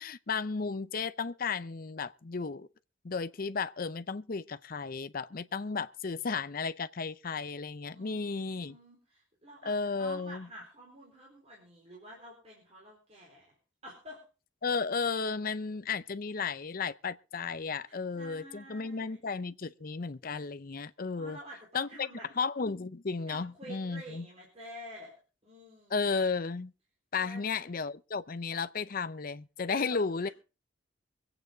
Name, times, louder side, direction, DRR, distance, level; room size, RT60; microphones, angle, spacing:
voice 1, 0.0-2.7 3.0-8.8 9.6-10.5 14.6-21.4 21.7-22.1 22.4-24.3 25.9-26.7 27.1-30.3, left 4 dB, 45° left, 0.6 m, -34 dB
voice 2, 7.9-13.5 13.8-14.2 17.9-19.2 21.2-22.3 23.3-25.1 25.4-26.1 27.2-27.7 29.7-30.3, equal, 35° right, 4.2 m, -49 dB
24.0 x 8.9 x 3.9 m
head